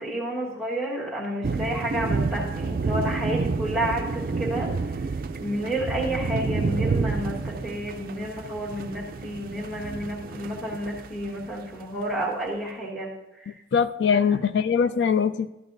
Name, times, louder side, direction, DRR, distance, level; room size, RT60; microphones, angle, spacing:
voice 1, 0.0-5.1 5.4-13.6 14.1-14.2, right 1 dB, 5° left, -7 dB, 1.2 m, -31 dB
sound 1, 1.4-11.5, right 4 dB, 50° right, 0.3 m, -29 dB
voice 2, 13.7-15.5, left 6 dB, 70° left, 12 dB, 0.4 m, -22 dB
13.0 x 10.0 x 2.6 m, 0.98 s
head